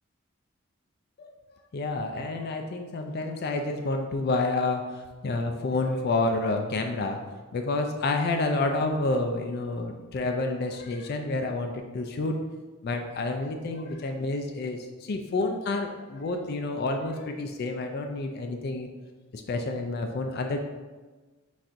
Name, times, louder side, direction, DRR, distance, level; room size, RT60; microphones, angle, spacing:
voice 1, 1.7-7.2 7.5-12.4 12.8-18.9 19.3-20.6, left 2 dB, 50° left, 4 dB, 0.3 m, -29 dB
4.1 x 2.5 x 4.5 m, 1.3 s
head